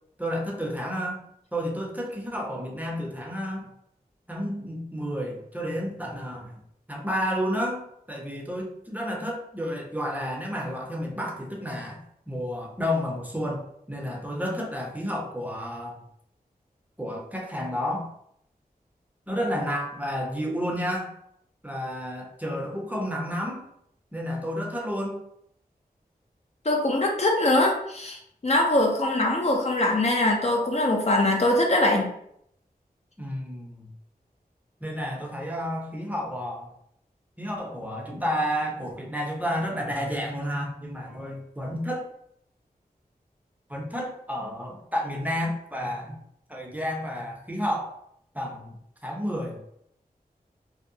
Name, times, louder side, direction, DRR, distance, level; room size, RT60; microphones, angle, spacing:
voice 1, 0.2-1.2 1.5-3.7 4.3-6.6 6.9-12.0 12.3-16.0 17.0-18.1 19.3-21.1 21.6-23.6 24.1-25.3 33.2-33.9 34.8-36.7 37.4-42.1 43.7-46.2 46.5-47.9 48.3-48.7 49.0-49.6, equal, 10° right, -1 dB, 0.6 m, -31 dB
voice 2, 26.6-28.2 28.4-32.1, left 1 dB, 45° left, 0 dB, 0.5 m, -22 dB
2.7 x 2.0 x 2.6 m, 0.72 s
cardioid pair, 45°, 16 cm